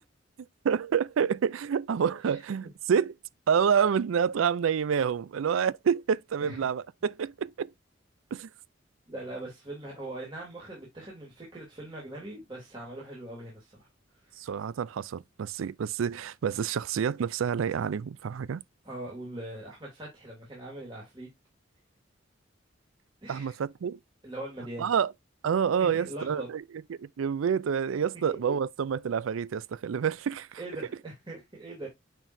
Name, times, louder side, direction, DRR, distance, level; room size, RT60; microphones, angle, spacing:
voice 1, 0.6-3.1 3.5-7.7 8.3-8.5 14.4-18.6 23.3-24.0 24.8-25.1 25.4-26.6 26.9-30.6, right 7 dB, 90° right, 0.4 m, -28 dB
voice 2, 2.2-2.7 6.4-6.6 9.1-13.9 14.1-14.5 18.8-21.3 23.2-23.5 24.2-24.9 25.8-26.5 28.3-28.5 30.6-31.9, right 1 dB, 25° right, 2.5 m, -41 dB
9.1 x 4.6 x 2.6 m
head